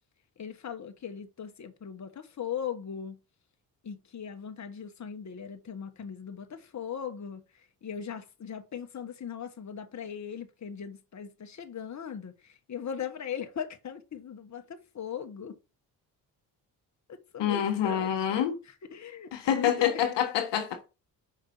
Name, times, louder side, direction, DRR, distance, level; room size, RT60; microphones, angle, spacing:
voice 1, 0.4-3.2 3.8-7.4 7.8-15.6 17.1-18.4 18.9-20.0, left 8 dB, 40° left, 1.3 m, -39 dB
voice 2, 17.4-18.6 19.3-20.9, left 9 dB, 75° left, 1.3 m, -27 dB
5.2 x 4.5 x 5.9 m
supercardioid pair, 60°, 43 cm